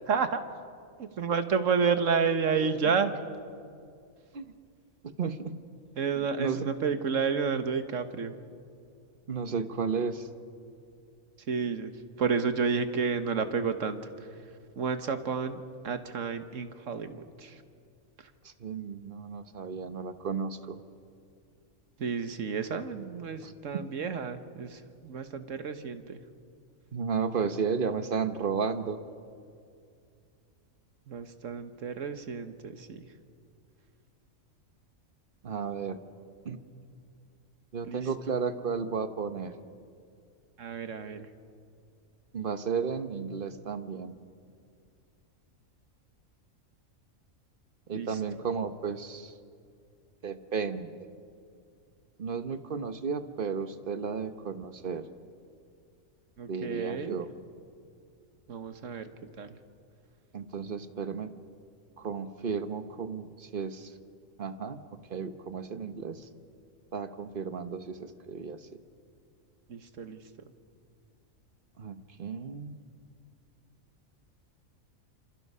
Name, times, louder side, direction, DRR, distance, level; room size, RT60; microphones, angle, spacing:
voice 1, 0.1-0.4 1.0-3.1 6.0-8.4 11.5-11.9 12.2-14.5 14.7-17.6 18.2-18.3 22.0-26.2 31.1-33.1 37.8-38.1 40.6-41.3 47.9-48.4 56.4-57.2 58.5-59.1 59.4-59.6 69.7-70.2, right 5 dB, 65° right, 9 dB, 1.5 m, -31 dB
voice 2, 5.0-5.6 6.2-6.6 9.3-10.3 18.6-20.8 23.4-23.8 26.9-29.0 35.4-36.0 36.4-36.6 37.7-39.5 42.3-44.2 47.9-49.3 50.2-50.9 52.2-55.1 56.5-57.3 60.3-61.3 62.0-63.9 64.4-64.8 65.1-66.3 66.9-68.6 71.8-72.8, right 5 dB, 40° right, 10 dB, 1.1 m, -33 dB
27.0 x 27.0 x 5.6 m, 2.3 s
omnidirectional pair, 1.4 m